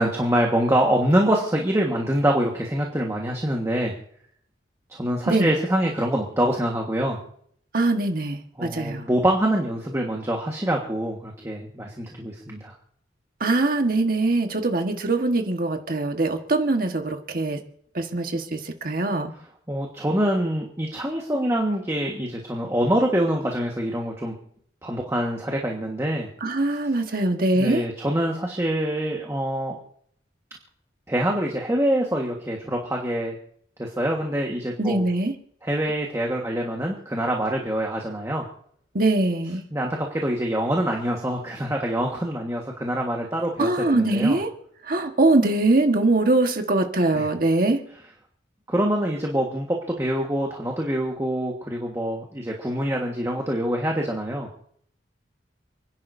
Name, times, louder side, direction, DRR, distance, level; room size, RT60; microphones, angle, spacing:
voice 1, 0.0-3.9 4.9-7.2 8.6-12.7 19.7-24.3 24.8-26.3 27.1-27.2 27.5-29.8 31.1-33.4 33.8-35.0 35.6-38.5 39.7-44.4 47.1-47.3 48.7-54.5, right 1 dB, 15° right, -1 dB, 1.5 m, -25 dB
voice 2, 7.7-9.1 13.4-17.6 17.9-19.3 26.4-27.8 34.8-35.3 38.9-39.6 43.6-44.5 44.9-47.8, right 2 dB, 50° right, 5 dB, 1.5 m, -22 dB
29.5 x 10.5 x 2.7 m, 0.65 s
head